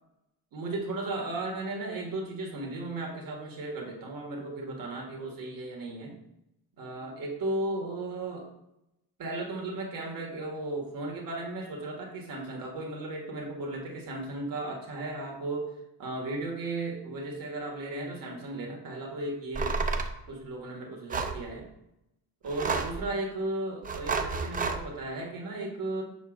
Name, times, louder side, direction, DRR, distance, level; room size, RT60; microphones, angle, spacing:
voice 1, 0.5-6.2 6.8-8.5 9.2-15.7 16.0-19.8 20.3-21.7 22.4-26.0, right 2 dB, 60° right, 0 dB, 1.8 m, -35 dB
sound 1, 19.5-20.1 21.1-21.4 22.5-23.0 23.8-24.8, right 4 dB, 25° right, 0.4 m, -30 dB
7.1 x 6.0 x 2.4 m, 0.84 s
cardioid pair, 160°, 37 cm